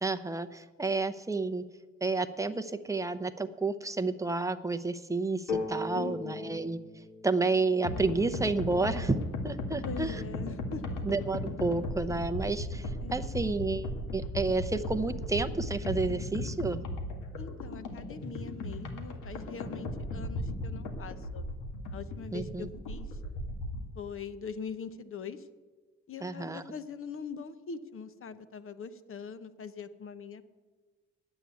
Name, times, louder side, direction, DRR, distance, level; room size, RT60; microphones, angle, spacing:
voice 1, 0.0-1.6 2.0-6.8 7.2-9.2 9.4-10.2 11.0-16.8 22.3-22.7 26.2-26.6, right 3 dB, 10° right, 9 dB, 0.7 m, -30 dB
sound 1, 5.5-9.2, left 4 dB, 70° left, 2.5 m, -39 dB
voice 2, 5.9-6.6 9.8-11.0 13.0-13.4 17.4-21.4 21.9-23.2 23.9-25.5 26.1-30.4, left 5 dB, 45° left, 11 dB, 0.9 m, -43 dB
sound 2, 7.8-23.9, left 1 dB, 85° left, 1.8 m, -37 dB
9.9 x 8.4 x 9.1 m, 1.3 s
cardioid pair, 90°, 30 cm